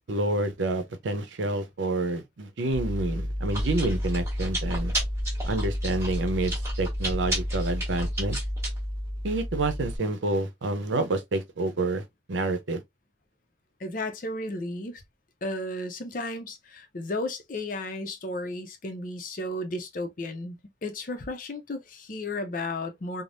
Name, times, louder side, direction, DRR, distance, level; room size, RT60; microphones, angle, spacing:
voice 1, 0.1-4.9 5.5-8.4 9.2-12.8, right 2 dB, 85° right, 0.6 m, -28 dB
Chewing mastication, 2.7-10.0, equal, 15° right, 1.0 m, -30 dB
voice 2, 13.8-15.0 15.4-20.6 20.8-23.2, left 2 dB, 45° left, 0.5 m, -34 dB
3.3 x 2.0 x 2.5 m
head